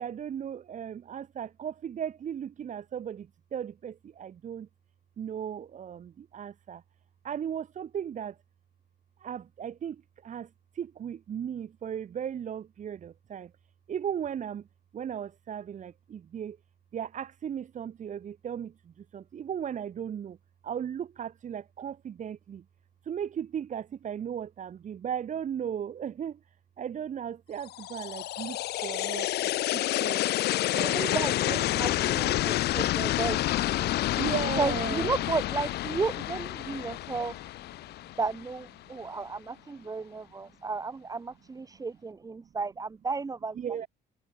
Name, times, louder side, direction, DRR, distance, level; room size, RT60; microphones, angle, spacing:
voice 1, 0.0-4.7 5.2-6.8 7.2-8.4 9.2-10.5 10.7-13.5 13.9-14.7 14.9-16.6 16.9-20.4 20.6-22.6 23.0-26.4 26.8-30.2 30.7-31.2 31.5-31.7 34.1-35.1 43.6-43.9, right 8 dB, 45° right, 3.4 m, -36 dB
sound 1, 27.7-38.7, left 15 dB, 75° left, 2.4 m, -29 dB
voice 2, 30.8-33.9 34.6-37.4 38.2-43.6, right 4 dB, 20° right, 1.8 m, -33 dB
cardioid pair, 110°, 17 cm